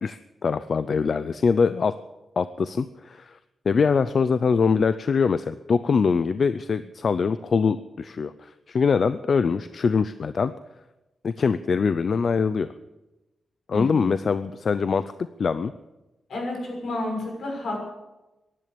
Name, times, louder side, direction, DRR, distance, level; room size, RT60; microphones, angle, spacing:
voice 1, 0.0-1.9 2.4-3.4 3.7-10.5 11.2-12.7 13.7-15.7, left 5 dB, 50° left, 13 dB, 0.5 m, -23 dB
voice 2, 13.7-14.1 16.3-17.8, left 2 dB, 75° left, 0 dB, 6.2 m, -30 dB
15.5 x 11.0 x 8.5 m, 1.0 s
wide cardioid pair, 145°, 0 cm